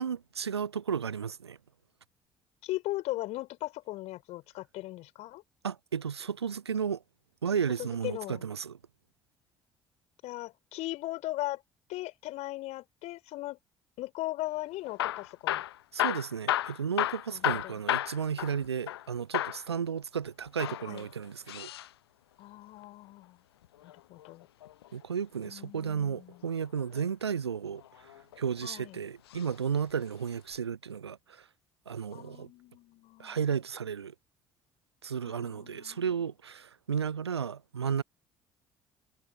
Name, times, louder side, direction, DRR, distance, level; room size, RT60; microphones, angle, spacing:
voice 1, 0.0-1.6 5.6-7.0 7.4-8.8 15.9-21.7 24.9-28.1 28.4-31.5 31.9-32.5 33.2-34.1 35.0-38.0, right 7 dB, 85° right, 0.4 m, -33 dB
voice 2, 2.6-5.4 7.8-8.4 10.2-11.6 11.9-13.6 14.0-15.6 17.3-17.8 20.9-21.1 22.4-23.4 23.8-24.5 25.4-26.5 28.6-29.0 32.1-33.4 35.2-36.3, left 17 dB, 55° left, 4.6 m, -38 dB
Hammer / Drill, 14.8-19.1 19.3-19.7 20.5-21.9 23.6-24.9 26.6-27.0 27.8-28.6 29.3-29.5 29.8-29.9 30.5-30.6, left 13 dB, 75° left, 0.6 m, -33 dB
figure-of-eight pair, 50°, 13 cm